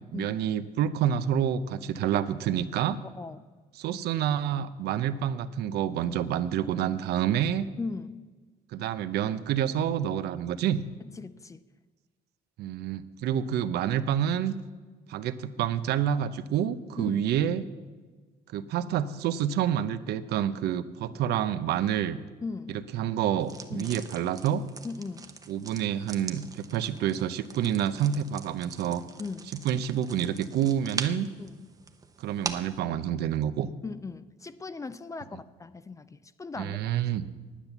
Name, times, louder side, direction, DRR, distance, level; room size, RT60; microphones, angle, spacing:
voice 1, 0.0-3.0 3.8-7.7 8.7-10.8 12.6-14.5 15.1-17.6 18.5-22.2 22.7-24.6 25.5-29.0 29.6-31.3 32.2-33.7 36.6-37.2, right 10 dB, 75° right, 12 dB, 0.7 m, -28 dB
voice 2, 7.8-8.2 11.0-11.6 17.0-17.3 22.4-22.8 23.7-24.0 24.8-25.3 29.2-29.5 31.4-31.7 33.8-36.8, left 4 dB, 20° left, 14 dB, 0.5 m, -38 dB
sound 1, 23.4-32.8, right 4 dB, 20° right, 0.8 m, -42 dB
10.0 x 9.0 x 7.0 m, 1.4 s
cardioid pair, 110°, 17 cm